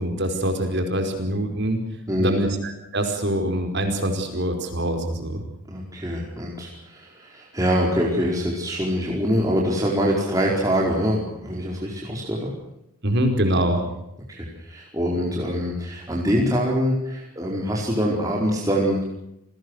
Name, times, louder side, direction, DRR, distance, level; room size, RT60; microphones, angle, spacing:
voice 1, 0.0-1.8 2.2-5.4 13.0-13.8, right 1 dB, 50° right, 5 dB, 5.1 m, -24 dB
voice 2, 5.7-12.5 14.3-19.1, equal, 15° right, -2 dB, 4.6 m, -24 dB
28.5 x 20.0 x 6.5 m, 0.80 s
head